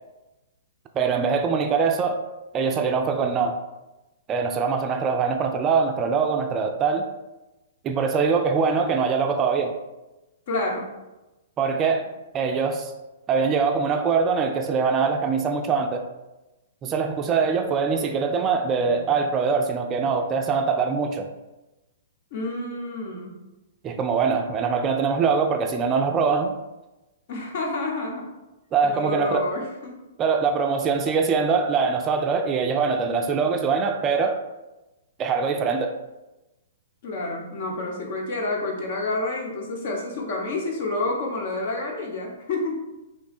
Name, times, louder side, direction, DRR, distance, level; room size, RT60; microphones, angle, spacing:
voice 1, 0.9-2.2 2.5-3.6 4.3-7.0 7.8-9.7 11.6-12.1 12.3-12.9 13.3-16.0 16.8-21.3 23.8-26.6 28.7-29.5 30.2-34.4 35.2-35.9, right 5 dB, 25° right, 4 dB, 0.3 m, -23 dB
voice 2, 10.5-10.9 22.3-23.4 27.3-28.3 28.8-29.9 37.0-42.8, left 2 dB, 55° left, 0 dB, 0.9 m, -29 dB
3.0 x 2.2 x 4.2 m, 1.0 s
hypercardioid pair, 120°, 0 cm